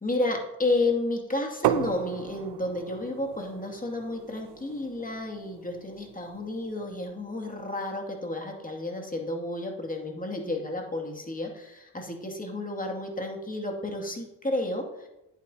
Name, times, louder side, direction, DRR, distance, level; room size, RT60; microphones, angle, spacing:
voice 1, 0.0-15.1, left 2 dB, 20° left, 1 dB, 2.3 m, -31 dB
sound 1, 1.6-7.3, right 12 dB, 80° right, 0.6 m, -35 dB
10.0 x 9.4 x 2.8 m, 0.94 s
supercardioid pair, 55°, 40 cm